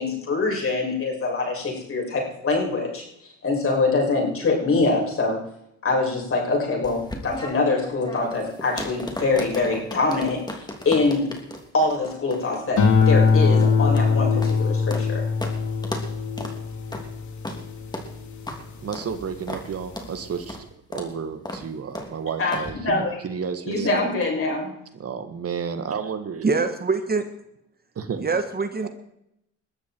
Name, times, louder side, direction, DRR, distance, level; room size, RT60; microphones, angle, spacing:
voice 1, 0.0-5.4 5.8-11.3 11.7-15.2 22.4-22.6 22.8-23.2 23.6-24.7, left 3 dB, 45° left, -1 dB, 7.3 m, -24 dB
sound 1, 6.8-15.1 15.4-15.6 15.8-16.1 16.4-16.6 16.9-17.1 17.4-17.6 17.9-18.1 18.5-18.6 18.9-19.1 19.5-19.7 20.0-20.1 20.5-20.7 20.9-21.1 21.5-21.7 22.0-22.1 22.5-22.7, left 1 dB, 15° left, 3.1 m, -35 dB
sound 2, 12.8-19.3 19.8-20.2, left 5 dB, 70° left, 3.1 m, -22 dB
voice 2, 18.8-24.1 24.9-26.5 28.0-28.2 28.8-28.9, right 6 dB, 50° right, 9 dB, 1.7 m, -32 dB
voice 3, 26.4-27.3 28.2-28.9, right 4 dB, 30° right, 8 dB, 1.6 m, -24 dB
21.0 x 13.5 x 4.7 m, 0.78 s
cardioid pair, 90°, 30 cm